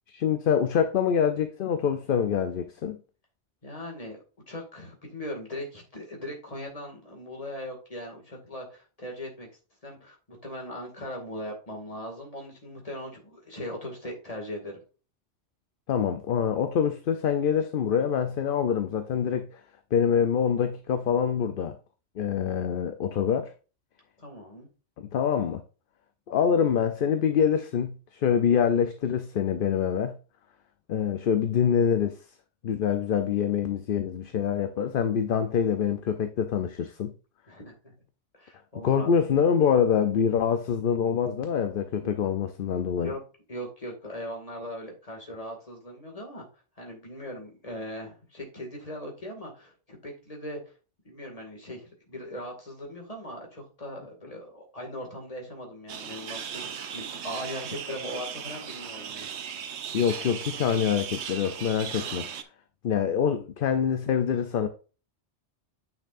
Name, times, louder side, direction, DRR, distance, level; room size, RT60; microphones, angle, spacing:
voice 1, 0.1-3.0 15.9-19.6 19.9-21.8 22.2-23.5 25.0-25.6 26.3-30.1 30.9-32.2 32.6-37.1 38.8-43.1 59.9-62.3 62.8-64.7, left 7 dB, 55° left, 0.7 m, -25 dB
voice 2, 3.6-4.2 4.5-9.5 9.8-14.8 24.2-24.7 37.5-37.9 38.3-39.1 42.0-42.1 43.0-43.2 43.5-46.5 46.8-50.6 51.0-59.3, equal, 30° left, 2.2 m, -39 dB
sound 1, 55.9-62.4, right 8 dB, 70° right, 1.1 m, -37 dB
9.0 x 6.0 x 2.5 m
omnidirectional pair, 1.2 m